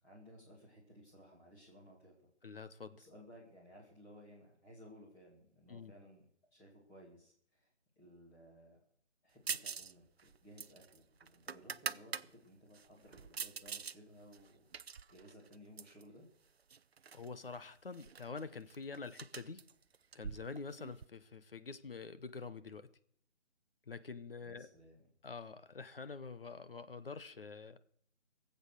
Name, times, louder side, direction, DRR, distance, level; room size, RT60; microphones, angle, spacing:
voice 1, 0.0-2.3 3.0-7.7 8.0-8.8 9.2-14.6 15.1-16.3 24.4-25.0, equal, 5° left, -5 dB, 2.3 m, -58 dB
voice 2, 2.4-3.0 5.7-5.9 17.1-19.6 20.1-22.9 23.9-24.7 25.2-27.8, left 4 dB, 55° left, 12 dB, 1.2 m, -46 dB
sound 1, 9.5-9.9 10.2-12.3 12.7-14.0 14.3-16.0 16.7-17.3 17.5-17.6 17.9-21.1, right 6 dB, 65° right, 0.6 m, -44 dB
19.0 x 8.2 x 6.7 m, 0.64 s
figure-of-eight pair, 170°, 34 cm